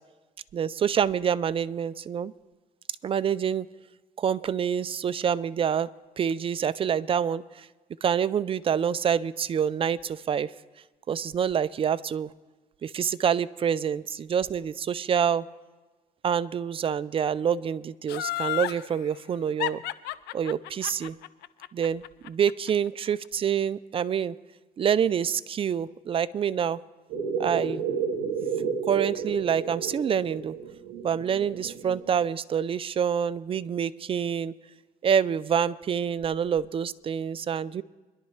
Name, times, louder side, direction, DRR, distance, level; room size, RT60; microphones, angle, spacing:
voice 1, 0.5-2.3 3.0-3.7 4.2-5.9 6.2-7.7 8.0-10.5 11.1-12.3 12.8-15.5 16.2-19.8 20.3-21.2 21.7-24.4 24.8-26.8 27.4-27.8 28.6-30.6 31.0-34.5 35.0-37.8, right 8 dB, 35° right, 16 dB, 0.4 m, -27 dB
Laughter, 18.1-18.8 19.6-22.7 23.1-23.2, left 16 dB, 80° left, 0.5 m, -31 dB
sound 1, 27.1-32.2, right 6 dB, 80° right, 1.0 m, -32 dB
24.0 x 11.5 x 3.2 m, 1.2 s
cardioid pair, 110°, 17 cm